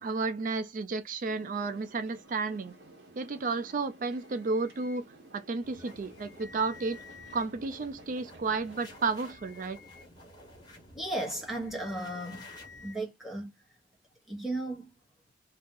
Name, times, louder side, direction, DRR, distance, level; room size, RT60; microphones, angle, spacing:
voice 1, 0.0-2.7 3.2-5.0 5.3-7.0 7.3-9.8, right 4 dB, 45° right, 0.4 m, -32 dB
sound 1, 1.2-9.4, right 2 dB, 65° right, 0.9 m, -54 dB
sound 2, 4.0-5.0 5.8-7.5 8.8-10.1 11.4-13.0, left 5 dB, 55° left, 0.7 m, -53 dB
sound 3, 5.6-12.9, left 1 dB, 20° left, 1.3 m, -53 dB
voice 2, 10.9-12.4 12.8-13.5 14.3-14.9, right 1 dB, ahead, 1.1 m, -35 dB
2.7 x 2.5 x 3.7 m
head